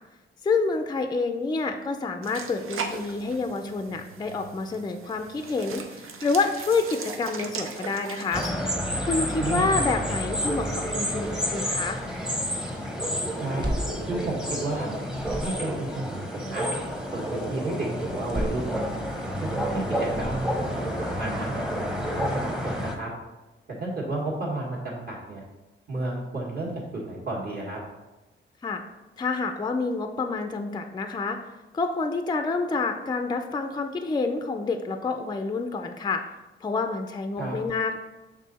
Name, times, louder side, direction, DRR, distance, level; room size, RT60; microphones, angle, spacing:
voice 1, 0.4-8.5 9.1-12.0 28.6-28.8 29.2-31.4 31.7-36.2 36.6-38.0, left 4 dB, 20° left, 7 dB, 0.4 m, -28 dB
sound 1, 2.2-8.5, right 5 dB, 85° right, 0.7 m, -38 dB
sound 2, 8.3-23.0, equal, 5° right, 0.7 m, -30 dB
voice 2, 9.4-9.8 13.4-13.6 14.1-15.0 15.4-16.7 17.1-18.8 19.4-21.7 22.2-23.1 23.8-25.4 25.9-27.8 37.4-37.6, right 2 dB, 50° right, -4 dB, 1.6 m, -32 dB
sound 3, 13.6-14.8 15.1-15.9 18.0-19.3 20.0-20.8, equal, 20° right, 1.0 m, -34 dB
7.4 x 3.7 x 4.1 m, 1.1 s
wide cardioid pair, 160°, 21 cm